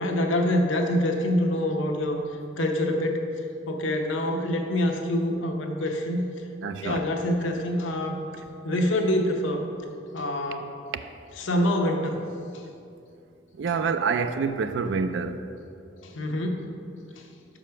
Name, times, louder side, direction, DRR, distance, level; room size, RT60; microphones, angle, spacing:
voice 1, 0.0-6.3 6.8-8.2 8.6-9.7 10.1-10.7 11.4-12.2 12.5-12.6 16.0-16.7 17.2-17.3, left 1 dB, 80° left, 2 dB, 0.8 m, -26 dB
voice 2, 6.6-7.0 10.9-11.0 13.6-15.4, right 5 dB, 65° right, 9 dB, 0.4 m, -27 dB
5.7 x 5.0 x 5.7 m, 2.5 s
head